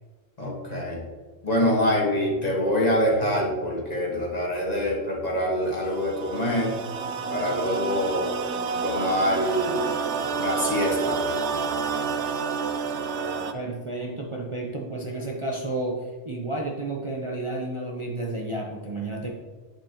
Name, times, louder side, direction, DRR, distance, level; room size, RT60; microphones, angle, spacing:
voice 1, 0.4-1.0 1.4-6.8 7.3-8.3 8.8-9.8 10.3-11.2, equal, 40° left, -2 dB, 1.7 m, -25 dB
sound 1, 5.7-13.5, right 5 dB, 85° right, 0.9 m, -29 dB
voice 2, 13.5-19.3, right 2 dB, 30° right, -1 dB, 0.7 m, -31 dB
7.7 x 6.7 x 2.9 m, 1.5 s
omnidirectional pair, 1.1 m